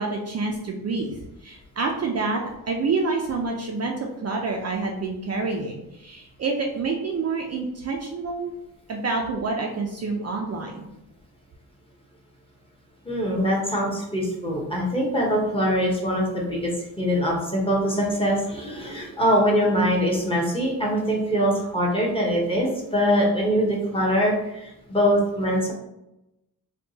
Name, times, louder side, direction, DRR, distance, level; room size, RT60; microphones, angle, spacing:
voice 1, 0.0-8.5 8.9-10.9, right 3 dB, 40° right, 1 dB, 0.4 m, -28 dB
voice 2, 13.0-16.7 17.0-25.7, equal, 15° left, -3 dB, 0.9 m, -23 dB
4.4 x 2.3 x 2.7 m, 0.89 s
wide cardioid pair, 130°, 38 cm